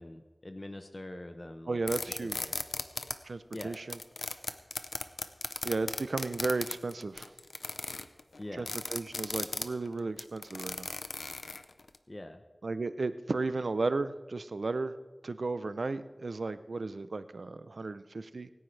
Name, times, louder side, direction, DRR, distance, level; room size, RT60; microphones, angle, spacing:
voice 1, 0.0-1.8 2.2-2.6 3.5-3.8 8.4-8.7 12.1-12.4, left 1 dB, 35° left, 7 dB, 0.8 m, -44 dB
voice 2, 1.7-2.4 3.2-4.0 5.6-7.3 8.6-10.9 12.6-14.9 15.2-18.5, right 3 dB, 85° right, 13 dB, 0.6 m, -34 dB
sound 1, 1.9-3.1 3.5-12.0, left 3 dB, 85° left, 0.7 m, -36 dB
24.5 x 10.0 x 3.3 m, 1.3 s
wide cardioid pair, 50°, 0 cm